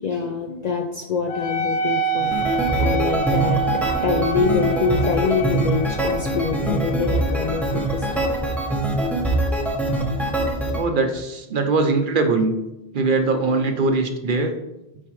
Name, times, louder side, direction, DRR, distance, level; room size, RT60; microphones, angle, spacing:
voice 1, 0.0-8.3, left 5 dB, 55° left, 3 dB, 0.5 m, -25 dB
Wind instrument woodwind instrument, 1.3-10.2, right 5 dB, 90° left, 1.1 m, -29 dB
sound 1, 2.2-10.8, right 1 dB, ahead, 0.6 m, -23 dB
voice 2, 10.7-12.6 12.9-14.5, right 3 dB, 60° right, 6 dB, 0.8 m, -21 dB
7.5 x 4.9 x 3.1 m, 0.92 s
omnidirectional pair, 1.1 m